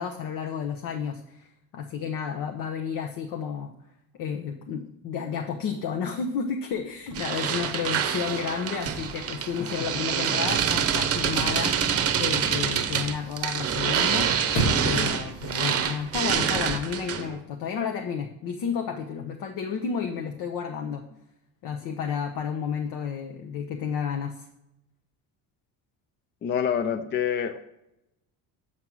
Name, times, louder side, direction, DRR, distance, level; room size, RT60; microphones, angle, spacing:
voice 1, 0.0-3.7 4.2-14.4 14.8-21.0 21.6-24.5, left 6 dB, 60° left, 5 dB, 0.8 m, -31 dB
Chirp tweet / Car / Slam, 6.7-16.7, right 1 dB, 90° left, 2.2 m, -38 dB
sound 1, 7.1-17.4, right 8 dB, 35° right, 0.8 m, -26 dB
voice 2, 26.4-27.6, left 8 dB, 30° left, 10 dB, 0.4 m, -26 dB
7.6 x 5.3 x 6.1 m, 0.87 s
cardioid pair, 135°, 39 cm